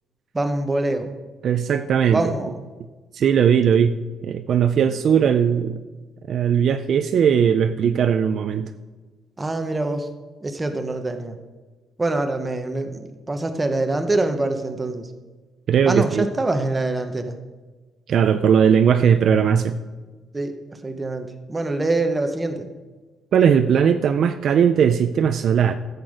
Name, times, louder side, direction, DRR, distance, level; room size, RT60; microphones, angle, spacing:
voice 1, 0.3-1.1 2.1-2.6 9.4-10.1 10.4-11.4 12.0-15.1 15.9-17.4 20.3-22.7, right 2 dB, 15° right, 6 dB, 0.8 m, -25 dB
voice 2, 1.4-2.2 3.1-5.8 6.3-8.7 15.7-16.3 18.1-19.8 23.3-25.8, right 8 dB, 45° right, 9 dB, 0.4 m, -18 dB
14.5 x 8.1 x 5.0 m, 1.3 s
cardioid pair, 180°, 0 cm